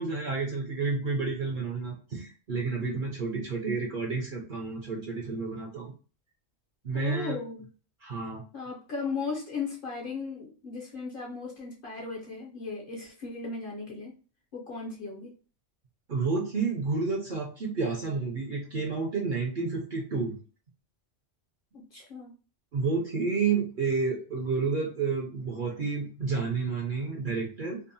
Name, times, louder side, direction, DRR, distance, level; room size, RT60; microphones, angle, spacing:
voice 1, 0.0-5.9 6.8-7.4 8.0-8.4 16.1-20.4 22.7-27.8, right 4 dB, 50° right, -1 dB, 0.7 m, -30 dB
voice 2, 6.9-7.7 8.5-14.2 14.5-15.3 21.7-22.3, left 4 dB, 55° left, -3 dB, 0.7 m, -36 dB
2.6 x 2.1 x 2.6 m, 0.36 s
omnidirectional pair, 1.3 m